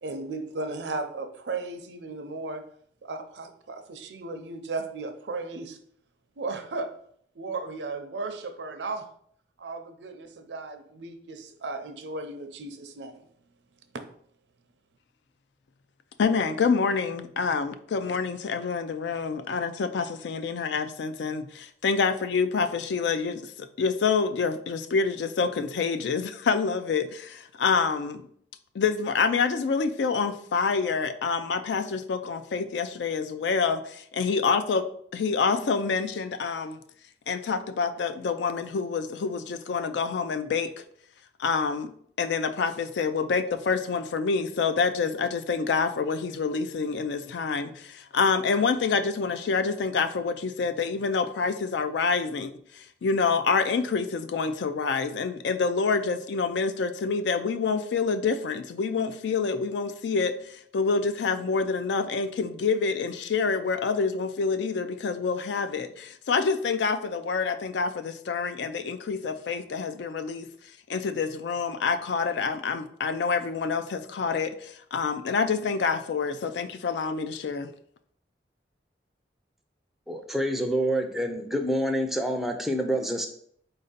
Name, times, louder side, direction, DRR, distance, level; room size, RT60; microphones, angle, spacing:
voice 1, 0.0-2.6 3.0-5.8 6.4-6.9 7.4-9.1 9.6-13.3, right 3 dB, 80° right, 7 dB, 0.5 m, -35 dB
voice 2, 16.2-28.2 28.7-34.9 35.1-36.8 37.3-40.7 41.4-70.5 70.9-77.7, left 5 dB, 80° left, 11 dB, 0.4 m, -27 dB
voice 3, 80.1-83.3, right 1 dB, ahead, 3 dB, 0.4 m, -27 dB
4.2 x 2.6 x 3.8 m, 0.63 s
head